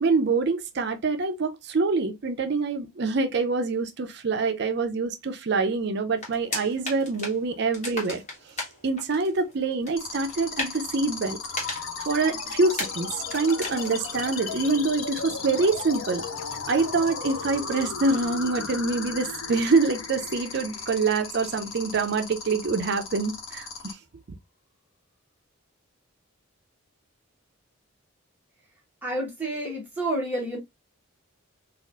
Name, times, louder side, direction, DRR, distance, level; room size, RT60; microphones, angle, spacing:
voice 1, 0.0-8.2 8.8-11.4 11.7-16.2 16.7-23.7, right 3 dB, 55° right, 0.5 m, -25 dB
sound 1, 6.2-14.6, left 2 dB, 35° left, 1.3 m, -38 dB
sound 2, 10.0-23.9, left 5 dB, 85° left, 0.9 m, -37 dB
sound 3, 11.4-22.4, left 5 dB, 70° left, 0.5 m, -37 dB
voice 2, 29.0-30.6, right 1 dB, 10° right, 1.0 m, -29 dB
4.1 x 2.4 x 2.4 m
head